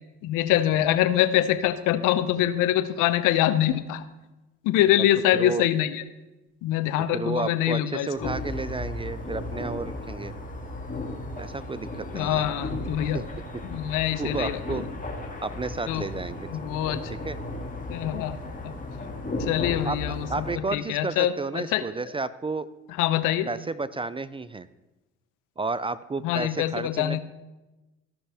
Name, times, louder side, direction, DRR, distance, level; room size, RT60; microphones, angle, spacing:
voice 1, 0.2-4.0 4.6-6.0 6.6-8.3 12.1-13.2 13.6-14.9 15.9-16.1 16.5-17.1 17.9-18.4 18.6-18.7 19.4-20.4 20.7-21.9 23.0-23.5 26.2-27.2, left 12 dB, 75° left, 12 dB, 0.7 m, -24 dB
voice 2, 5.3-5.6 7.1-10.3 11.4-12.5 13.0-13.2 14.2-14.8 15.4-16.5 17.2-17.4 19.8-22.7 23.5-24.7 25.6-27.2, right 3 dB, 15° right, 15 dB, 0.4 m, -32 dB
sound 1, 8.2-20.5, left 2 dB, 25° left, 2.1 m, -35 dB
15.0 x 5.5 x 3.4 m, 1.1 s
supercardioid pair, 60°, 32 cm